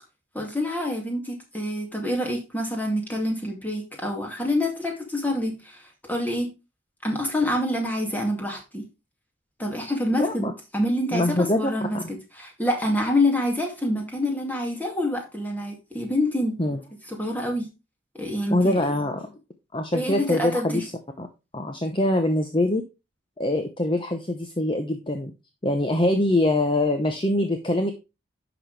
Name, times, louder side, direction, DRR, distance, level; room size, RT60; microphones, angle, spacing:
voice 1, 0.3-5.8 6.1-6.5 7.0-8.8 9.6-10.5 10.7-16.6 17.1-17.7 18.1-18.8 19.9-20.8, left 1 dB, 10° left, 1 dB, 2.3 m, -26 dB
voice 2, 10.2-10.5 11.1-12.1 16.6-16.8 18.5-19.3 19.7-20.9 21.2-21.3 21.5-22.8 23.4-25.3 25.6-27.9, left 1 dB, 25° left, 5 dB, 0.8 m, -24 dB
11.0 x 6.0 x 3.4 m, 0.27 s
head